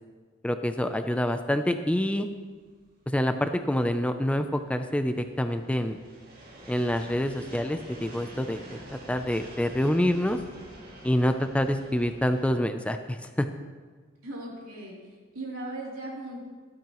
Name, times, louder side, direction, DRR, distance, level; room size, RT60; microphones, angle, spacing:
voice 1, 0.4-2.3 3.1-6.0 6.7-10.4 11.0-13.5, left 1 dB, 5° left, 8 dB, 0.4 m, -27 dB
sound 1, 1.6-12.5, right 1 dB, 45° right, 2.2 m, -48 dB
voice 2, 14.2-15.0 15.3-16.4, right 2 dB, 85° right, -4 dB, 3.1 m, -37 dB
13.5 x 12.5 x 3.0 m, 1.5 s
head